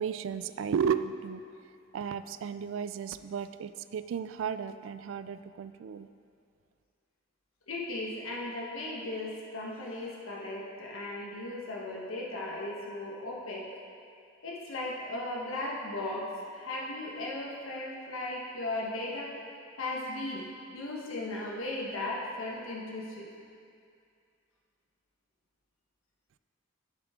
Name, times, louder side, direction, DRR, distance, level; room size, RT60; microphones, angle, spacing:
voice 1, 0.0-1.4 1.9-6.1, right 7 dB, 70° right, 12 dB, 0.3 m, -34 dB
voice 2, 7.7-13.6 14.4-19.3 19.8-20.5 20.7-23.3, left 2 dB, 80° left, -4 dB, 1.3 m, -36 dB
11.0 x 7.3 x 3.6 m, 2.4 s
head